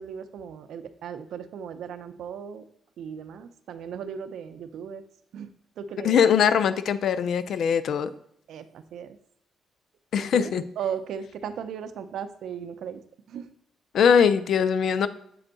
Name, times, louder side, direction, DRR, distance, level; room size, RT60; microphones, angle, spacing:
voice 1, 0.0-2.6 3.0-5.0 5.3-5.5 5.8-6.2 8.5-9.2 10.2-13.0 13.3-13.5, right 7 dB, 75° right, 10 dB, 0.5 m, -36 dB
voice 2, 6.0-8.1 10.1-10.6 13.9-15.1, left 7 dB, 65° left, 13 dB, 0.4 m, -21 dB
7.6 x 4.4 x 3.9 m, 0.74 s
cardioid pair, 115°, 0 cm